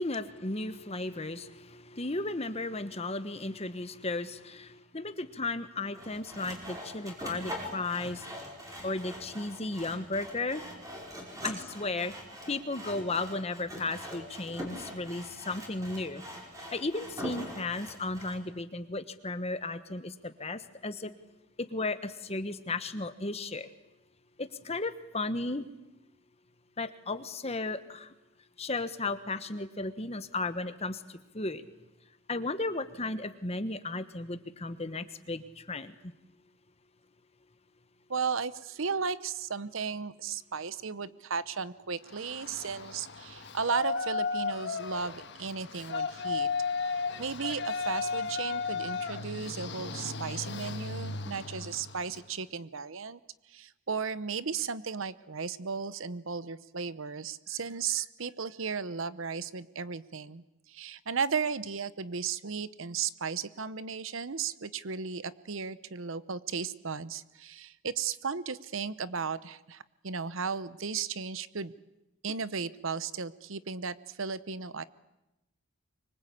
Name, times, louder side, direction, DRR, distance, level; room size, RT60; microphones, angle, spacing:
voice 1, 0.0-8.3 8.8-10.6 11.4-12.1 12.5-16.2 16.7-21.1 21.6-23.7 24.4-25.7 26.8-28.1 28.6-31.6 32.3-36.1, left 2 dB, 30° left, 11 dB, 1.3 m, -35 dB
Sawing, 5.9-18.4, equal, 15° right, 5.1 m, -43 dB
voice 2, 38.1-46.5 46.9-53.2 53.5-71.7 72.2-74.8, right 5 dB, 65° right, 16 dB, 0.9 m, -35 dB
Yell, 42.1-52.3, left 4 dB, 55° left, 1.5 m, -35 dB
25.0 x 23.5 x 8.6 m, 0.95 s
head